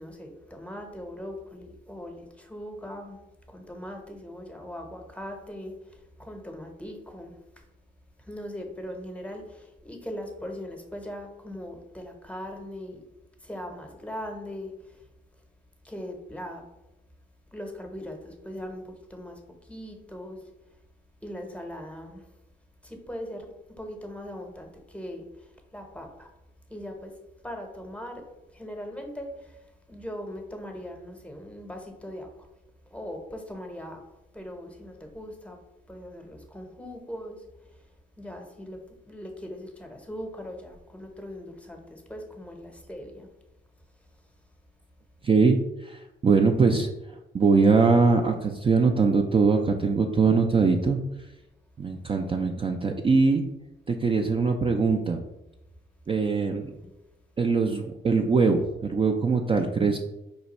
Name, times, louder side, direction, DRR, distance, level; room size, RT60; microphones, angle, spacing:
voice 1, 0.0-3.2 3.5-5.7 6.2-7.3 8.3-13.0 13.4-14.7 15.8-16.6 17.5-19.4 19.7-20.4 21.2-22.2 22.8-23.5 23.8-25.2 25.7-26.3 26.7-27.1 27.4-28.2 28.5-29.3 29.9-32.3 32.9-34.0 34.3-35.6 35.9-37.4 38.2-43.3 56.6-56.9, equal, 5° left, 0.8 m, -40 dB
voice 2, 45.2-46.9 47.3-51.0 51.8-53.5 53.9-55.2 56.1-56.7 57.4-60.0, right 4 dB, 25° right, 0.4 m, -22 dB
5.1 x 2.3 x 4.0 m
cardioid pair, 90°, 20 cm